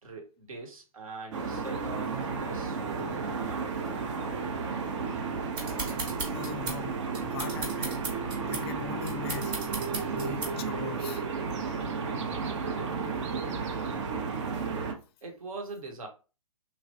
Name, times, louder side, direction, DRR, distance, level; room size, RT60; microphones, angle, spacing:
voice 1, 0.0-3.8 15.2-16.1, right 3 dB, 70° right, 1.1 m, -42 dB
sound 1, 1.3-14.9, right 5 dB, 55° right, 0.6 m, -33 dB
sound 2, 5.6-10.8, right 3 dB, 25° right, 1.0 m, -37 dB
voice 2, 6.3-8.1 8.5-9.6 10.1-11.2, left 10 dB, 45° left, 0.4 m, -40 dB
3.2 x 2.3 x 2.7 m
hypercardioid pair, 130°, 18 cm